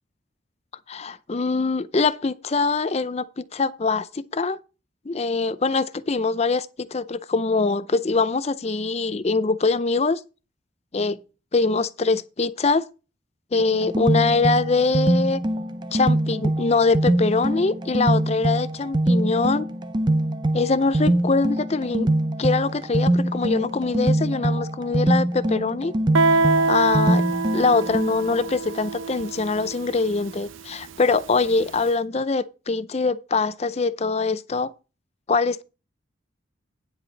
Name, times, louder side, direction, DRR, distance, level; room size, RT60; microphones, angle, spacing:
voice 1, 0.9-4.6 5.1-10.2 10.9-11.2 11.5-12.8 13.5-15.4 15.9-19.7 20.5-22.1 22.4-25.9 26.7-27.2 27.5-34.7 35.3-35.6, left 3 dB, 30° left, 0.5 m, -23 dB
sound 1, 13.6-28.5, right 1 dB, 20° right, 0.5 m, -24 dB
Guitar, 26.1-31.6, right 3 dB, 80° right, 0.6 m, -25 dB
9.7 x 8.3 x 4.0 m
head